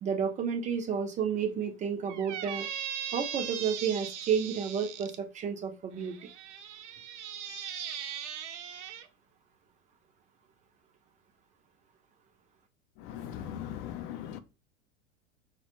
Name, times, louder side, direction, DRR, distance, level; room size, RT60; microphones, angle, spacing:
voice 1, 0.0-2.7 3.1-6.2, right 7 dB, 20° right, 0.3 m, -31 dB
Squeak, 2.1-5.2 6.0-9.1, right 9 dB, 75° right, 0.6 m, -39 dB
voice 2, 13.0-14.4, left 10 dB, 50° left, 0.4 m, -39 dB
2.1 x 2.1 x 2.9 m
hypercardioid pair, 90°, 37 cm